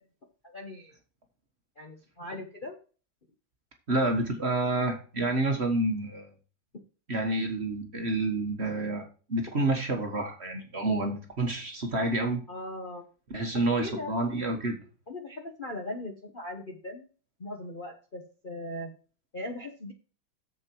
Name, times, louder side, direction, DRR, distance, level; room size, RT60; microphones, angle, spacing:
voice 1, 0.4-0.9 1.8-2.8 12.5-13.0 13.6-14.2 15.1-17.0 17.4-18.9 19.3-19.9, left 1 dB, 35° left, 2 dB, 1.0 m, -39 dB
voice 2, 3.9-6.3 7.1-9.0 9.3-12.4 13.3-14.8, right 2 dB, 35° right, 3 dB, 1.5 m, -28 dB
7.5 x 7.4 x 4.5 m, 0.37 s
omnidirectional pair, 2.3 m